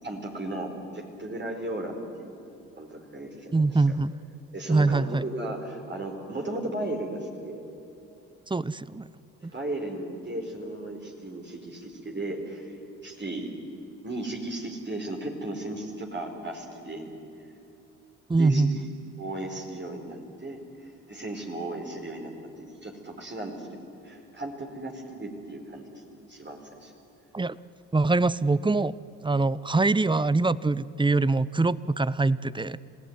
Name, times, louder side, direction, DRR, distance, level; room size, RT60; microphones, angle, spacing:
voice 1, 0.0-2.4 2.8-3.8 4.5-7.7 9.4-12.8 13.0-13.5 14.0-17.0 18.3-18.9 19.2-26.0 26.3-26.9, right 1 dB, 30° right, 1 dB, 4.6 m, -36 dB
voice 2, 3.5-4.1 4.7-5.2 8.5-9.1 9.4-9.5 18.3-18.8 27.3-27.6 27.9-28.9 29.2-32.8, right 3 dB, 15° right, 19 dB, 0.7 m, -23 dB
27.0 x 17.5 x 9.6 m, 2.9 s
hypercardioid pair, 50°, 36 cm